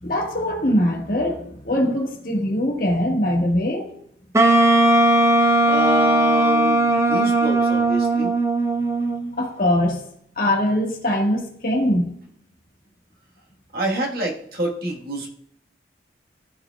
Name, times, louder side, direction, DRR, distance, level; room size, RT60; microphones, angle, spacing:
voice 1, 0.0-3.9 9.4-10.0 10.4-12.2, left 1 dB, 50° left, 0 dB, 1.5 m, -22 dB
Wind instrument woodwind instrument, 4.3-9.4, right 1 dB, 15° right, 0.5 m, -18 dB
voice 2, 5.6-8.3 13.7-15.3, right 1 dB, 55° right, -1 dB, 1.4 m, -27 dB
13.5 x 4.7 x 2.3 m, 0.66 s
head